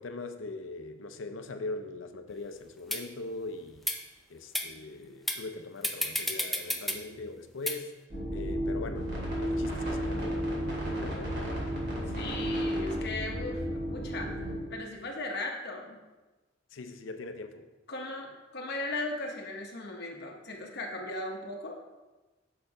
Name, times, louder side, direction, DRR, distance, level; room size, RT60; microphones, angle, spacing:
voice 1, 0.0-3.9 4.3-7.9 8.3-9.1 9.4-10.5 11.0-11.8 16.7-17.7, left 3 dB, 80° left, 7 dB, 0.6 m, -41 dB
sound 1, 2.3-2.4 2.9-3.0 3.8-4.0 4.6-4.7 5.3-5.4 5.8-7.0 7.7-7.8, left 1 dB, ahead, 0.4 m, -31 dB
sound 2, 8.1-14.6, equal, 60° right, 2.4 m, -32 dB
voice 2, 12.1-14.3 14.7-16.0 17.9-21.8, left 2 dB, 60° left, 1 dB, 0.9 m, -37 dB
6.7 x 4.4 x 4.8 m, 1.1 s
head